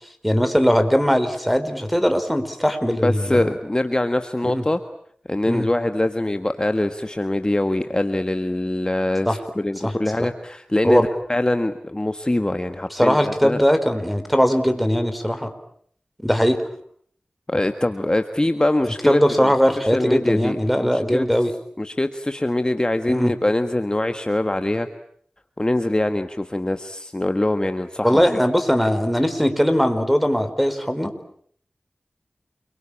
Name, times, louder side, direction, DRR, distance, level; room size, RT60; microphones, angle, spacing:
voice 1, 0.2-3.4 4.4-4.6 5.5-5.7 9.3-9.4 9.8-9.9 10.8-11.0 12.9-15.5 16.2-16.6 19.1-21.5 23.1-23.3 28.0-31.1, equal, ahead, 9 dB, 4.5 m, -20 dB
voice 2, 3.0-4.8 5.3-13.6 17.5-19.5 19.8-21.3 21.8-24.9 25.6-28.3, left 1 dB, 25° left, 8 dB, 1.6 m, -23 dB
29.0 x 23.5 x 8.7 m, 0.63 s
wide cardioid pair, 50°, 3 cm